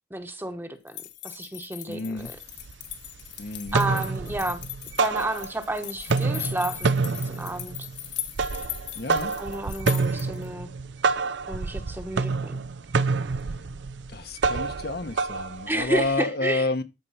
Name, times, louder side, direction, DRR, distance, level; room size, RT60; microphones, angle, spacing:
voice 1, 0.1-2.4 3.7-4.7 5.0-7.8 9.4-10.7 11.5-12.6 15.7-16.7, right 1 dB, 10° right, 1.1 m, -31 dB
sound 1, 0.9-10.5, left 13 dB, 75° left, 1.9 m, -39 dB
voice 2, 1.9-2.3 3.4-3.8 8.9-9.3 14.1-16.8, left 2 dB, 55° left, 1.0 m, -29 dB
sound 2, 2.2-2.3 2.6-3.2 3.5-5.7 6.0-16.1, right 4 dB, 75° right, 0.5 m, -28 dB
13.5 x 4.6 x 5.7 m
head